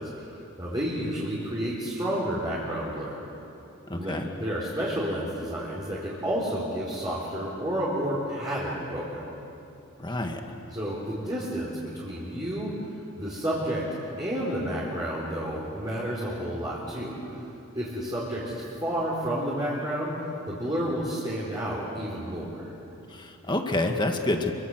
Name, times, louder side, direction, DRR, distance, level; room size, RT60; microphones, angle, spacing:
voice 1, 0.0-3.3 3.9-9.3 10.7-12.9 13.2-13.8 14.2-17.5 17.7-22.7, equal, 20° right, -7 dB, 4.4 m, -31 dB
voice 2, 3.9-4.3 10.0-10.5 23.1-24.5, left 1 dB, 20° left, 4 dB, 1.8 m, -28 dB
27.5 x 24.0 x 8.1 m, 2.9 s
head